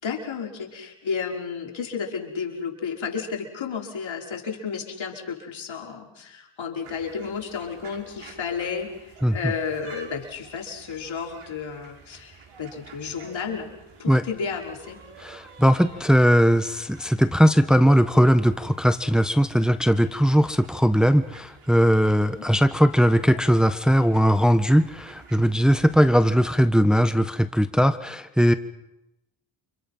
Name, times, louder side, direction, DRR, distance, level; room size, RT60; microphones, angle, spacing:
voice 1, 0.0-13.7 14.0-15.0 22.3-22.5, left 6 dB, 65° left, 0 dB, 5.6 m, -32 dB
sound 1, 6.8-26.6, right 5 dB, 75° right, 5.2 m, -49 dB
voice 2, 9.2-9.5 14.1-14.2 15.2-28.5, equal, ahead, 9 dB, 1.5 m, -19 dB
29.5 x 26.5 x 5.8 m, 0.94 s
supercardioid pair, 45°, 50 cm